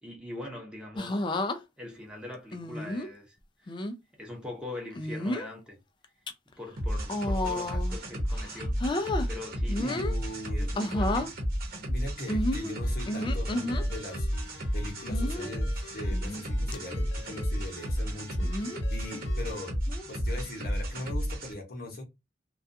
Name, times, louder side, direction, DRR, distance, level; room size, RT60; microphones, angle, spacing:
voice 1, 0.0-1.2 1.8-3.7 4.2-5.8 6.6-10.0 10.5-11.2, left 2 dB, 5° right, 0.7 m, -42 dB
sound 1, 1.0-1.6 2.5-3.1 3.7-3.9 4.9-5.5 6.0-6.3 7.0-8.0 8.3-9.3 9.7-10.2 10.7-11.3 12.3-13.8 15.1-15.5 16.1-16.4 16.7-16.8 18.4-18.8 19.9-20.2, left 1 dB, 25° left, 0.3 m, -31 dB
sound 2, 6.8-21.5, equal, 55° right, 0.9 m, -32 dB
voice 2, 9.8-10.7 11.1-11.3 11.9-14.3 14.7-19.7 20.1-22.0, left 1 dB, 55° left, 0.8 m, -40 dB
Ringtone, 12.8-19.7, left 3 dB, 85° left, 0.6 m, -48 dB
2.3 x 2.2 x 2.6 m
head